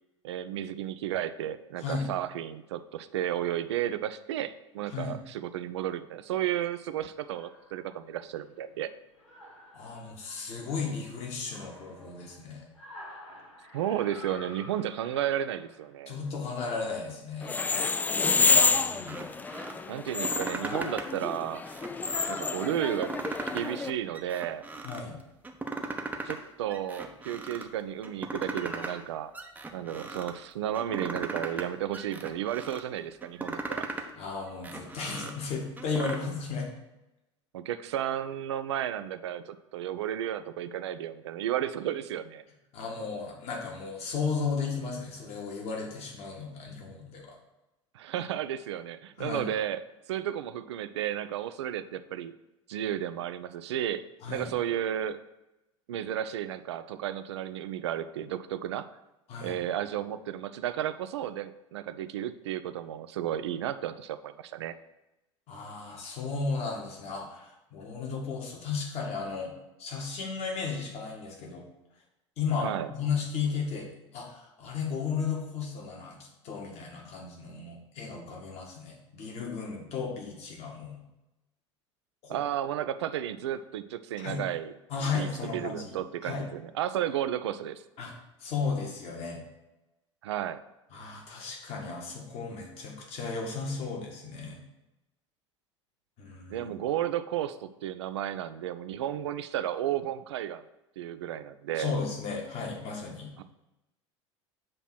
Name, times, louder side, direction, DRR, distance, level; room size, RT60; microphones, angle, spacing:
voice 1, 0.2-8.9 13.7-16.1 19.9-21.6 22.3-23.1 23.5-24.6 26.2-29.3 29.7-33.9 37.5-42.4 47.9-49.8 50.1-52.3 52.7-54.0 54.3-55.2 55.9-58.9 59.4-64.7 72.6-72.9 82.3-84.7 85.1-87.8 90.2-90.6 96.5-100.6 101.0-102.0 103.4-103.5, right 11 dB, 65° right, 12 dB, 0.4 m, -33 dB
sound 1, 7.3-8.6 9.0-16.3, left 1 dB, 85° left, 1.4 m, -50 dB
voice 2, 9.7-12.7 16.1-17.5 18.4-19.2 24.8-25.2 34.1-36.7 42.7-47.4 49.2-49.5 54.2-54.5 59.3-59.6 65.5-69.5 69.8-71.6 72.4-76.2 76.4-81.0 82.2-82.4 84.2-84.4 84.9-86.0 86.2-86.5 88.0-88.1 88.4-89.4 90.9-94.6 96.2-96.7 101.8-103.3, left 5 dB, 45° left, 0 dB, 1.6 m, -34 dB
sound 2, 17.4-23.9, left 4 dB, 10° left, 0.3 m, -28 dB
sound 3, 19.0-19.7 20.1-21.2 21.6-22.4 22.9-23.8 24.1-25.0 25.4-26.4 26.7-27.6 28.0-29.0 29.3-30.3 30.7-31.7 31.9-32.8 33.2-34.1 34.5-36.2, right 3 dB, 10° right, 0.7 m, -38 dB
7.7 x 3.0 x 5.9 m, 0.95 s
figure-of-eight pair, 75°, 16 cm